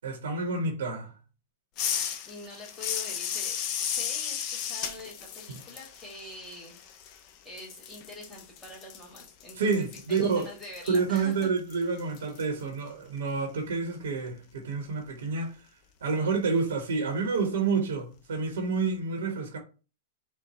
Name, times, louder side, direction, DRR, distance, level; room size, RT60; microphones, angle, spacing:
voice 1, 0.0-1.1 5.5-5.6 9.5-10.5 10.9-15.6 16.0-19.6, right 4 dB, 90° right, 1.1 m, -29 dB
sound 1, 1.8-7.3 7.6-12.4, left 8 dB, 35° left, 0.5 m, -35 dB
voice 2, 2.2-6.7 7.1-11.5, left 2 dB, 10° left, 1.4 m, -45 dB
4.4 x 2.1 x 4.1 m
supercardioid pair, 150°, 0 cm